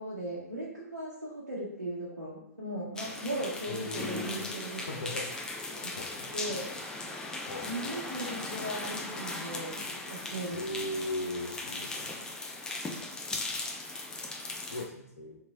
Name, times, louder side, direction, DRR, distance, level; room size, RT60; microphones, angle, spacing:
voice 1, 0.0-4.9 6.3-6.7 7.7-9.8 10.1-10.8, right 1 dB, 90° right, -8 dB, 0.7 m, -38 dB
sound 1, 3.0-14.8, left 2 dB, 10° left, 0.3 m, -38 dB
voice 2, 3.7-4.5 4.8-5.3 5.7-6.3 7.5-7.7 10.5-12.2 13.3-13.5 14.7-15.4, left 1 dB, 60° left, 1 dB, 0.7 m, -38 dB
2.9 x 2.9 x 2.4 m, 0.80 s
figure-of-eight pair, 110°, 9 cm